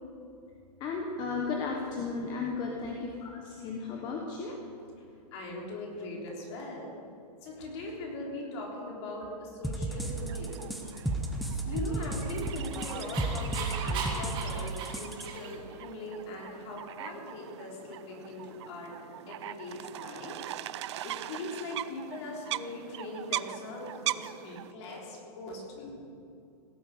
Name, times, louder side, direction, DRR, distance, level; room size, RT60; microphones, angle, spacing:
voice 1, 0.8-4.6, left 4 dB, 20° left, 1 dB, 1.0 m, -34 dB
voice 2, 5.3-6.9 7.4-10.6 11.6-20.4 21.0-25.9, left 2 dB, 40° left, -1 dB, 3.5 m, -40 dB
sound 1, 9.6-15.3, right 2 dB, ahead, 0.7 m, -33 dB
sound 2, 10.0-24.7, right 13 dB, 45° right, 0.4 m, -41 dB
Dog, 11.9-15.7, right 4 dB, 25° right, 2.1 m, -39 dB
17.0 x 8.7 x 7.1 m, 2.6 s
hypercardioid pair, 165°, 21 cm